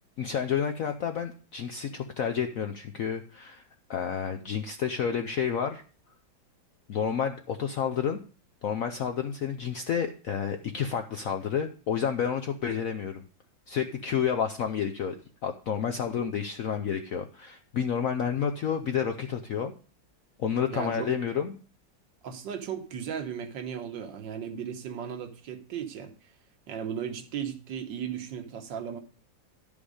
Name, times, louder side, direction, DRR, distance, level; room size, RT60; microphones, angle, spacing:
voice 1, 0.2-3.6 3.9-5.8 6.9-8.2 8.6-13.2 13.7-15.2 15.4-19.7 20.4-21.6, left 7 dB, 70° left, 0.8 m, -30 dB
voice 2, 20.7-21.1 22.2-26.1 26.7-29.0, right 8 dB, 70° right, 1.6 m, -36 dB
11.5 x 5.3 x 4.9 m
omnidirectional pair, 2.1 m